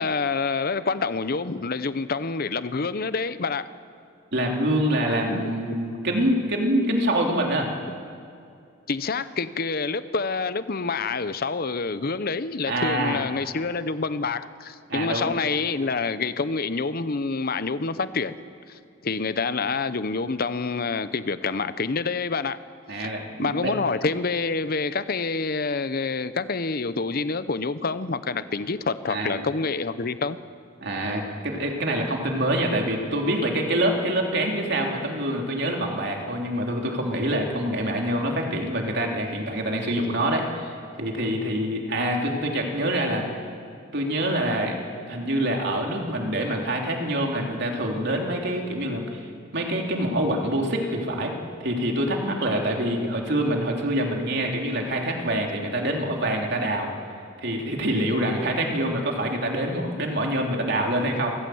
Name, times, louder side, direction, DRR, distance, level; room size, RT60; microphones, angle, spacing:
voice 1, 0.0-3.7 5.3-5.4 8.9-18.4 18.7-22.6 23.0-23.1 23.4-30.4, left 4 dB, 50° left, 14 dB, 0.8 m, -27 dB
voice 2, 4.3-7.7 12.7-13.2 14.9-15.3 22.9-23.7 29.1-29.4 30.8-43.3 43.9-44.8 45.1-49.2 49.5-51.3 51.6-56.9 57.4-61.4, right 1 dB, 60° right, 1 dB, 3.3 m, -25 dB
29.0 x 15.0 x 7.9 m, 2.4 s
head